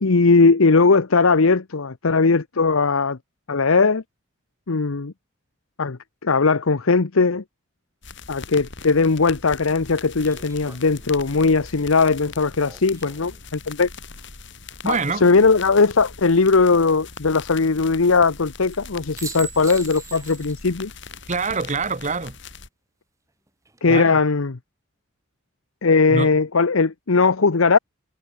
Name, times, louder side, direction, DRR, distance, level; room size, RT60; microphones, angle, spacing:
voice 1, 0.0-3.2 3.5-4.0 4.7-5.1 5.8-7.4 8.3-13.9 14.9-20.9 23.8-24.6 25.8-27.8, left 4 dB, 85° left, 0.9 m, -19 dB
sound 1, 8.0-22.7, left 5 dB, 60° left, 5.8 m, -40 dB
sound 2, 8.8-8.9 10.2-13.5 15.3-15.9 18.7-18.8 19.2-20.7 21.0-21.1 23.5-24.0, right 5 dB, 15° right, 1.3 m, -42 dB
voice 2, 14.8-15.2 21.3-22.4 23.9-24.2 26.1-26.4, right 4 dB, 35° right, 1.4 m, -25 dB
head